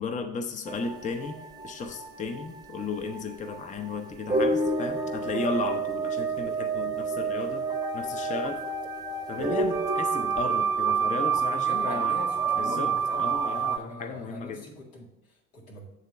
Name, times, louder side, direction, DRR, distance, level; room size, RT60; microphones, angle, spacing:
voice 1, 0.0-1.4 1.6-7.7 7.9-8.6 9.3-12.2 12.6-12.9 13.2-14.6, left 4 dB, 15° left, 8 dB, 0.6 m, -34 dB
sound 1, 0.7-13.8, right 5 dB, 10° right, 0.9 m, -29 dB
voice 2, 11.5-15.9, left 3 dB, 75° left, -2 dB, 2.2 m, -42 dB
8.1 x 3.7 x 6.6 m, 0.89 s
figure-of-eight pair, 60°, 44 cm